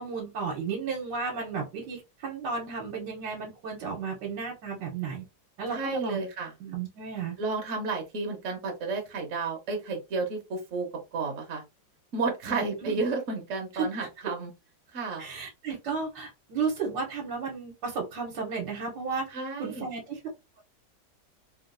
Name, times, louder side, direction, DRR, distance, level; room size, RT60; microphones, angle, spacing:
voice 1, 0.0-5.2 5.6-6.2 6.6-7.4 12.5-13.0 13.7-14.1 15.2-19.3 19.6-20.2, right 5 dB, 75° right, -2 dB, 1.5 m, -33 dB
voice 2, 5.7-6.5 7.4-11.6 12.1-14.5 14.9-15.3 19.3-19.9, right 3 dB, 55° right, 2 dB, 1.0 m, -32 dB
3.7 x 2.4 x 2.5 m, 0.24 s
omnidirectional pair, 2.0 m